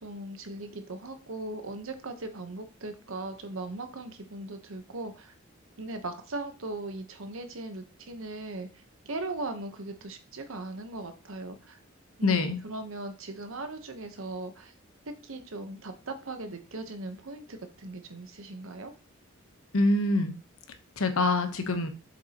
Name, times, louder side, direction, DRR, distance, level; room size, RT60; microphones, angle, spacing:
voice 1, 0.0-5.3 5.8-8.7 9.1-11.8 12.2-14.7 15.2-18.9, right 2 dB, 70° right, 8 dB, 0.9 m, -39 dB
voice 2, 12.2-12.6 19.7-20.3 21.0-21.9, left 2 dB, 90° left, 7 dB, 1.0 m, -25 dB
7.2 x 5.3 x 2.9 m, 0.35 s
head